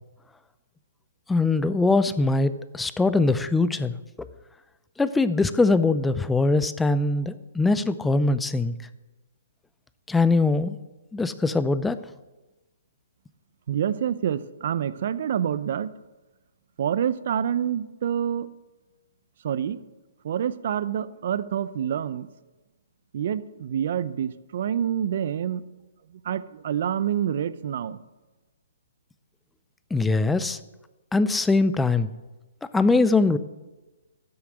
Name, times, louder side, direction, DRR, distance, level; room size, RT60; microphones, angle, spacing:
voice 1, 1.3-4.3 5.0-8.7 10.1-10.8 11.1-12.0 29.9-30.6 31.1-32.1 32.7-33.4, left 3 dB, 5° left, 13 dB, 0.5 m, -22 dB
voice 2, 13.7-15.9 16.8-18.5 19.4-19.8 20.2-22.3 23.1-25.6 26.1-28.0, right 9 dB, 55° right, 16 dB, 0.6 m, -27 dB
12.5 x 7.0 x 7.9 m, 1.1 s
hypercardioid pair, 135°, 0 cm